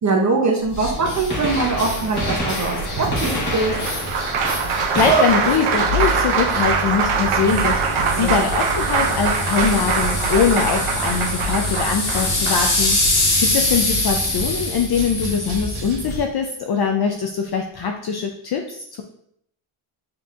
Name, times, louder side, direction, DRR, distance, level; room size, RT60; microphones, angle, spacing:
voice 1, 0.0-3.7 8.1-8.4, right 3 dB, 35° right, 0 dB, 0.7 m, -22 dB
sound 1, 0.7-16.2, left 1 dB, 80° left, 1.8 m, -25 dB
Gunshot gunfire, 1.3-7.0 9.0-9.1 10.1-10.2 11.8-11.9 13.3-13.4 13.6-13.7, left 1 dB, 20° left, 1.2 m, -29 dB
Applause, 2.9-13.2 14.6-14.7 15.0-16.0, right 5 dB, 75° right, 0.7 m, -23 dB
voice 2, 4.6-19.0, left 6 dB, 50° left, 3 dB, 0.5 m, -22 dB
7.6 x 2.8 x 2.5 m, 0.69 s
wide cardioid pair, 150°, 49 cm